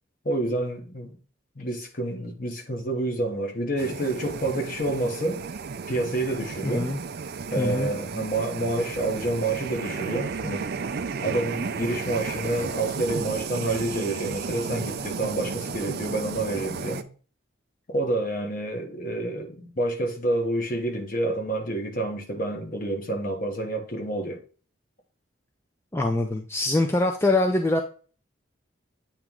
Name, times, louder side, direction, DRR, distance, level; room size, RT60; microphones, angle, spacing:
voice 1, 0.2-1.2 1.6-5.4 5.9-6.9 7.5-10.7 11.2-17.0 17.9-24.4, right 2 dB, 45° left, 1.1 m, -28 dB
sound 1, 3.8-17.0, right 5 dB, 50° right, 0.4 m, -33 dB
voice 2, 6.6-7.0 7.6-7.9 25.9-27.8, left 2 dB, 10° left, 0.4 m, -24 dB
8.6 x 3.0 x 3.6 m
head